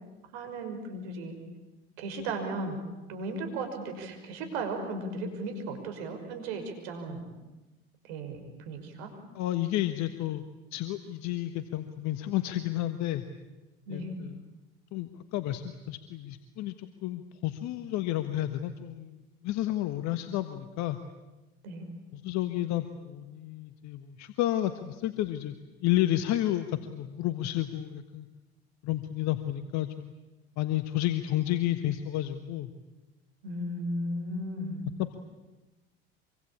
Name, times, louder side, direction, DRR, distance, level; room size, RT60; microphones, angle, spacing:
voice 1, 0.3-1.4 2.0-2.8 3.1-7.3 8.1-9.1 13.9-14.2 21.6-21.9 33.4-34.9, right 2 dB, 75° right, 5 dB, 5.9 m, -35 dB
voice 2, 9.3-10.4 10.7-13.2 13.9-14.4 14.9-21.0 22.1-25.6 25.8-28.3 28.8-30.1 30.6-32.7 35.0-35.2, left 14 dB, 60° left, 10 dB, 1.5 m, -31 dB
25.5 x 24.0 x 8.8 m, 1.1 s
hypercardioid pair, 80°, 31 cm